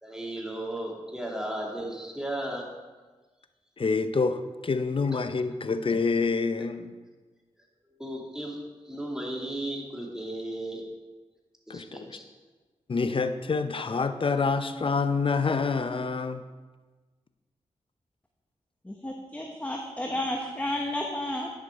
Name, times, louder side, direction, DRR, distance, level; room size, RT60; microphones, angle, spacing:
voice 1, 0.0-2.7 8.0-8.6 8.8-10.8 11.7-12.2, right 1 dB, 5° right, -1 dB, 2.4 m, -35 dB
voice 2, 3.8-6.9 11.7-12.2 12.9-16.4, left 4 dB, 45° left, 10 dB, 0.7 m, -27 dB
voice 3, 18.8-21.5, left 1 dB, 10° left, 2 dB, 1.0 m, -32 dB
10.5 x 6.0 x 4.7 m, 1.3 s
cardioid pair, 45°, 13 cm